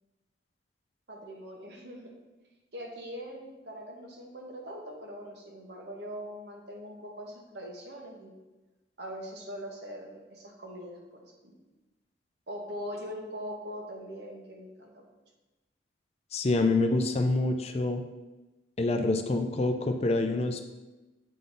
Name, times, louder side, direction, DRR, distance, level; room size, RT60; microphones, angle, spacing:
voice 1, 1.1-2.1 2.7-8.4 9.0-11.6 12.5-15.1, equal, 60° right, 0 dB, 1.1 m, -42 dB
voice 2, 16.3-18.0 18.8-20.6, left 2 dB, 30° left, 6 dB, 0.4 m, -26 dB
7.6 x 3.8 x 3.9 m, 1.1 s
head